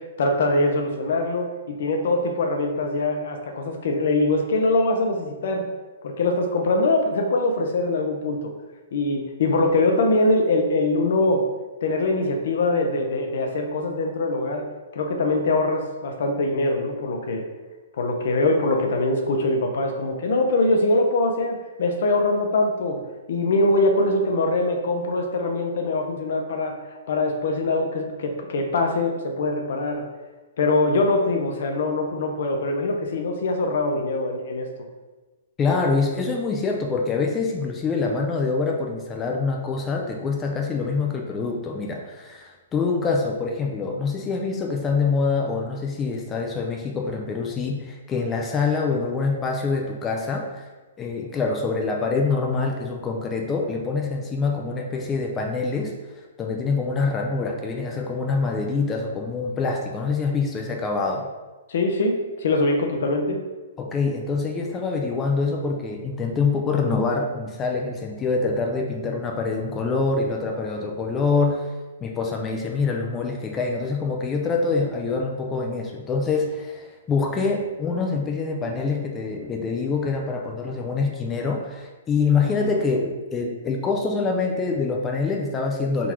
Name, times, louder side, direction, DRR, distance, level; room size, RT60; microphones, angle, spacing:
voice 1, 0.0-1.5 1.8-5.7 6.0-8.5 8.9-11.4 11.8-14.6 14.9-17.4 18.0-23.0 23.3-26.7 27.1-30.0 30.6-34.7 61.7-63.4, left 2 dB, 65° left, 3 dB, 0.7 m, -23 dB
voice 2, 35.6-50.7 51.0-55.9 56.4-61.3 63.8-71.7 72.0-86.1, left 4 dB, 15° left, 1 dB, 0.4 m, -25 dB
3.8 x 2.4 x 4.4 m, 1.2 s
hypercardioid pair, 150°, 0 cm